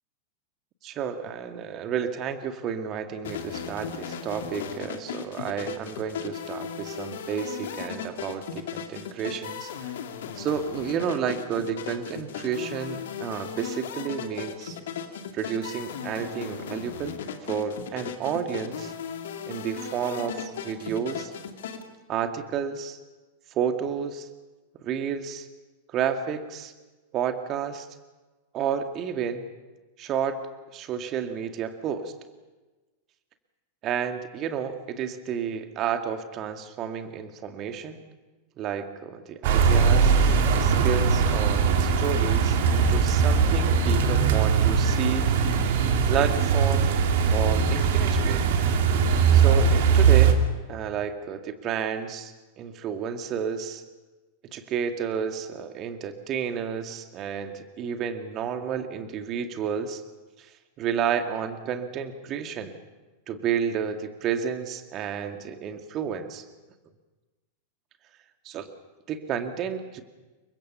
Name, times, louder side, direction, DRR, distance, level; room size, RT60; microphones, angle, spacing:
voice 1, 0.8-9.7 10.4-14.8 15.3-17.2 17.5-18.9 19.5-21.3 22.1-23.0 23.5-24.3 24.8-25.5 25.9-26.7 27.1-27.9 28.5-29.4 30.0-30.4 30.7-32.1 33.8-38.0 38.6-40.1 40.6-45.3 46.1-46.9 47.3-48.4 49.3-50.4 50.7-53.8 54.5-60.0 60.8-62.8 63.3-66.4 68.4-68.7 69.1-70.0, right 7 dB, 35° right, 7 dB, 2.2 m, -31 dB
sound 1, 3.2-21.8, left 7 dB, 60° left, 2.3 m, -36 dB
sound 2, 39.4-50.3, right 6 dB, 55° right, 2.7 m, -20 dB
29.0 x 23.5 x 5.8 m, 1.2 s
figure-of-eight pair, 90°, 0 cm